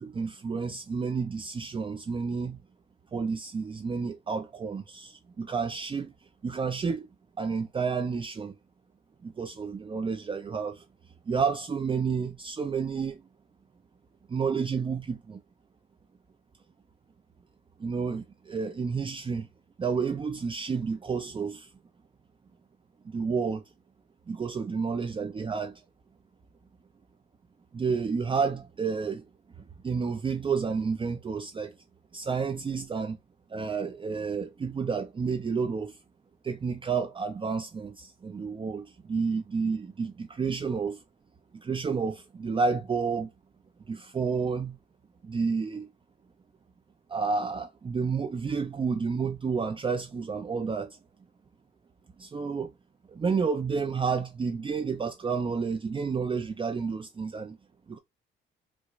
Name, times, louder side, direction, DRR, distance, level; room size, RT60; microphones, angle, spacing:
voice 1, 0.0-2.6 3.1-6.1 6.4-7.1 7.4-8.5 9.2-10.8 11.3-13.2 14.3-15.4 17.8-19.5 19.8-21.7 23.1-23.6 24.3-25.8 27.7-29.2 29.8-31.7 32.1-33.2 33.5-35.9 36.4-41.0 41.6-43.3 43.9-44.8 45.2-45.9 47.1-51.0 52.2-52.7 53.2-57.6 57.9-58.0, right 5 dB, 25° right, 0.4 m, -30 dB
4.6 x 2.1 x 2.4 m
cardioid pair, 90°, 20 cm